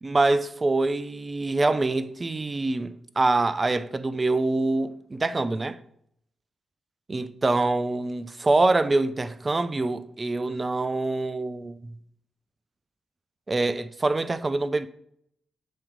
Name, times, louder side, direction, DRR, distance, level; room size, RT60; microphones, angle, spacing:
voice 1, 0.0-5.8 7.1-11.9 13.5-14.9, right 2 dB, 35° right, 0.5 m, -25 dB
7.5 x 3.0 x 5.1 m
hypercardioid pair, 45°, 0 cm